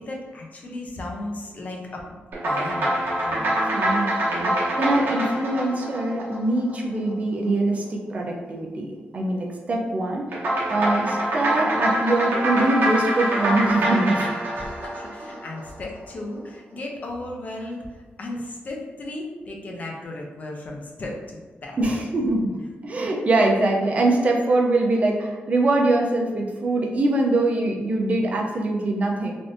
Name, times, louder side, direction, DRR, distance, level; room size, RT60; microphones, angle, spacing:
voice 1, 0.0-2.2 2.4-4.0 14.5-22.0, left 2 dB, 40° left, 0 dB, 0.5 m, -36 dB
sound 1, 2.3-7.0 10.3-15.7, right 1 dB, 65° right, 0.9 m, -25 dB
voice 2, 3.6-10.3 10.7-14.3 21.8-22.6 22.8-29.3, right 2 dB, 35° right, 0 dB, 0.5 m, -23 dB
3.4 x 2.5 x 2.5 m, 1.3 s
wide cardioid pair, 145°, 4 cm